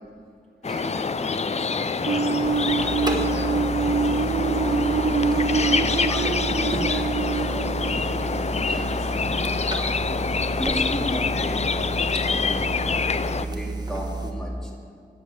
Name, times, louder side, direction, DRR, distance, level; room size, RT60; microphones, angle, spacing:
sound 1, 0.6-13.4, left 5 dB, 40° left, 0.4 m, -26 dB
voice 1, 0.6-4.8 5.5-10.0 10.6-11.7 12.2-12.7 13.4-14.7, equal, 5° left, -2 dB, 2.4 m, -36 dB
sound 2, 2.1-8.9, right 5 dB, 55° right, 0.4 m, -26 dB
sound 3, 2.4-14.3, right 2 dB, 25° right, 1.2 m, -31 dB
10.5 x 8.3 x 6.8 m, 2.3 s
wide cardioid pair, 80°, 17 cm